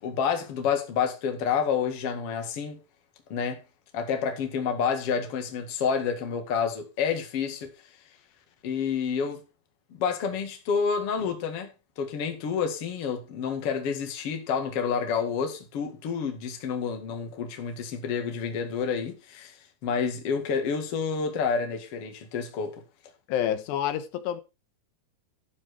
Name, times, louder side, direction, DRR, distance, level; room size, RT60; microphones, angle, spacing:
voice 1, 0.0-2.8 3.3-3.6 3.9-7.7 8.6-9.4 10.0-11.7 12.0-19.6 19.8-22.8, left 6 dB, 45° left, 2.3 m, -29 dB
voice 2, 23.3-24.4, left 10 dB, 85° left, 3.2 m, -28 dB
12.0 x 7.4 x 4.7 m
omnidirectional pair, 4.8 m